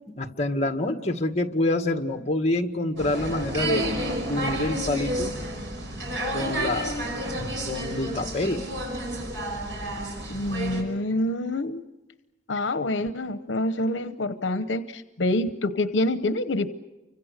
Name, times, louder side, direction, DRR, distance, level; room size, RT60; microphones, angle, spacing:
voice 1, 0.2-3.9 4.3-5.3 6.3-6.9 7.7-8.6, left 1 dB, 35° left, 5 dB, 1.8 m, -26 dB
sound 1, 3.0-10.8, right 1 dB, 85° right, 5.9 m, -30 dB
voice 2, 10.3-11.8 12.5-16.7, left 1 dB, 85° left, 11 dB, 0.9 m, -26 dB
30.0 x 25.0 x 6.6 m, 1.0 s
head